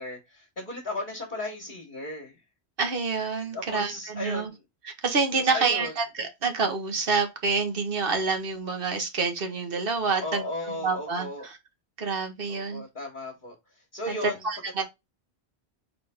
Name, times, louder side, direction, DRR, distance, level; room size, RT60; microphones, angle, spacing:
voice 1, 0.0-2.4 3.5-4.6 5.4-5.9 10.2-11.5 12.5-13.5 13.9-14.4 14.8-14.9, left 1 dB, 50° left, 1.3 m, -35 dB
voice 2, 2.8-4.5 4.8-10.4 10.8-11.6 12.0-12.8 14.1-14.8, right 4 dB, 60° right, 1.2 m, -27 dB
4.1 x 3.2 x 3.3 m
omnidirectional pair, 1.1 m